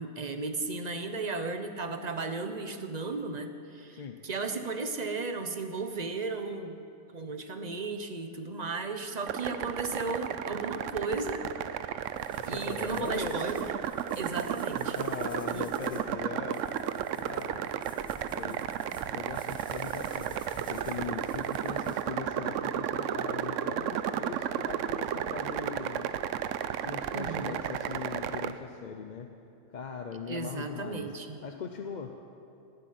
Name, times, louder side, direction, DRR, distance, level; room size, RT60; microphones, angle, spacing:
voice 1, 0.0-6.8 7.1-11.5 12.5-13.7 14.2-15.0 15.5-15.7 27.1-27.6 30.3-31.4, right 3 dB, 35° right, 7 dB, 1.0 m, -35 dB
sound 1, 9.2-28.5, right 9 dB, 80° right, 1.0 m, -33 dB
sound 2, 11.4-22.0, equal, 5° left, 1.8 m, -53 dB
voice 2, 12.3-13.5 14.9-16.6 17.2-17.6 18.3-18.6 19.1-26.1 26.8-29.3 29.7-31.1 31.4-32.1, left 6 dB, 45° left, 4 dB, 0.8 m, -40 dB
18.5 x 8.1 x 9.4 m, 2.6 s
omnidirectional pair, 1.3 m